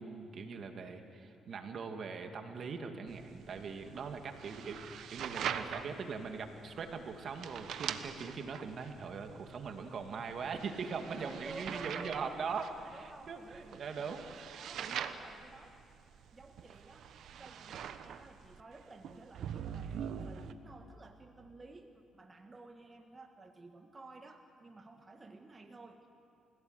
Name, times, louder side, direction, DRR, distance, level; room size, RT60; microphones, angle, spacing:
voice 1, 0.0-4.8 5.1-14.2 14.5-15.0, right 5 dB, 55° right, 5 dB, 2.1 m, -41 dB
sound 1, 3.1-20.5, right 8 dB, 75° right, 1.1 m, -44 dB
voice 2, 4.3-4.9 11.1-12.5 12.8-14.3 14.5-15.8 16.3-26.1, right 3 dB, 25° right, 4 dB, 1.4 m, -53 dB
29.0 x 16.5 x 8.1 m, 2.5 s
cardioid pair, 90°, 0 cm